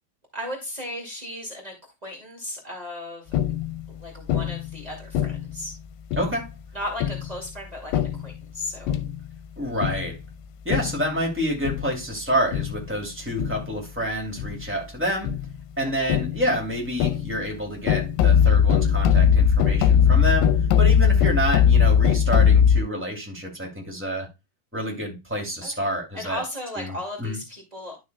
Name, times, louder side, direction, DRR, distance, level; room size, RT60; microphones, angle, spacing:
voice 1, 0.3-1.7 2.0-3.3 3.9-5.7 6.7-9.0 15.8-15.9 25.6-25.9 26.1-28.0, left 1 dB, 45° right, 0.5 m, -35 dB
sound 1, 3.3-3.9 4.3-4.8 5.1-5.6 6.1-6.4 7.0-7.4 7.9-8.3 8.9-9.3 9.8-10.2 10.7-11.1 11.6-12.0 12.5-12.9 13.4-13.8 14.4-14.7 15.2-15.6 16.1-16.6 17.0-17.5 17.9-22.8, left 8 dB, 85° left, 2.7 m, -20 dB
voice 2, 6.1-6.5 9.6-10.2 10.6-15.3 15.8-24.3 24.7-26.4 26.7-27.4, equal, 5° right, 1.3 m, -28 dB
12.0 x 6.2 x 2.2 m
omnidirectional pair, 4.8 m